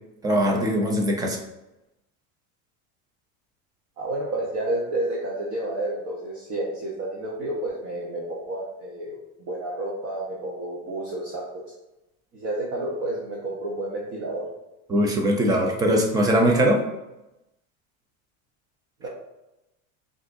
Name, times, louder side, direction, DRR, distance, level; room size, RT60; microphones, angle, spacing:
voice 1, 0.2-1.4 14.9-16.8, equal, 10° right, 1 dB, 0.3 m, -21 dB
voice 2, 4.0-11.6 12.3-14.5 19.0-19.1, right 1 dB, 35° right, -4 dB, 0.9 m, -30 dB
6.2 x 2.6 x 2.5 m, 0.94 s
supercardioid pair, 135°, 42 cm